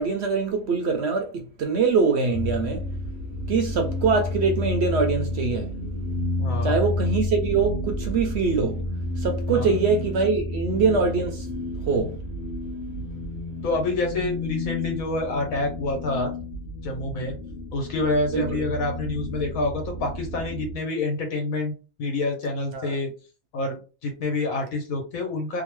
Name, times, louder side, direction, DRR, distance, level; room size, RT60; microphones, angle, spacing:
voice 1, 0.0-2.9 3.5-5.7 6.6-8.8 9.2-11.5 11.8-12.2 18.3-18.7 22.7-23.0, right 4 dB, 65° right, 0.7 m, -23 dB
sound 1, 2.3-20.7, left 1 dB, 50° left, 0.7 m, -31 dB
voice 2, 6.4-6.8 9.5-9.7 13.6-16.3 16.8-17.4 17.7-23.1 23.5-25.6, left 2 dB, 80° left, 1.3 m, -27 dB
2.9 x 2.1 x 3.1 m
omnidirectional pair, 1.4 m